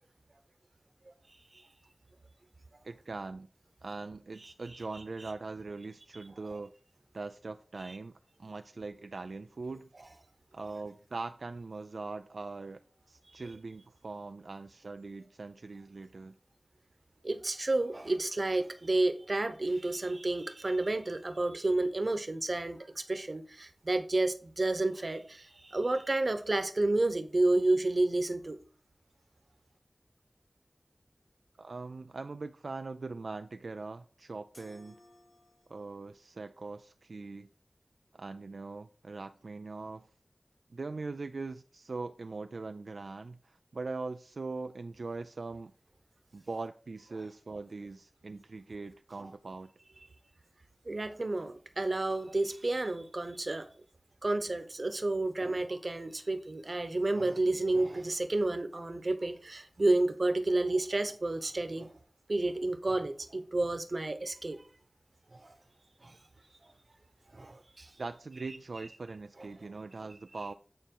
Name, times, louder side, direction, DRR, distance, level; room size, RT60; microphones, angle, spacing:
voice 1, 2.8-3.5 3.8-6.7 7.1-9.9 10.5-12.8 13.1-16.4 31.6-35.0 35.7-37.5 38.1-40.1 40.7-45.7 46.3-49.7 68.0-70.5, right 3 dB, 85° right, 0.3 m, -41 dB
voice 2, 17.2-28.6 49.2-49.3 50.9-53.7 54.2-61.9 62.3-64.6 67.3-67.9, right 2 dB, 55° right, 1.0 m, -30 dB
sound 1, 34.5-36.0, left 1 dB, 80° left, 2.8 m, -59 dB
9.1 x 4.3 x 4.6 m
wide cardioid pair, 50°, 0 cm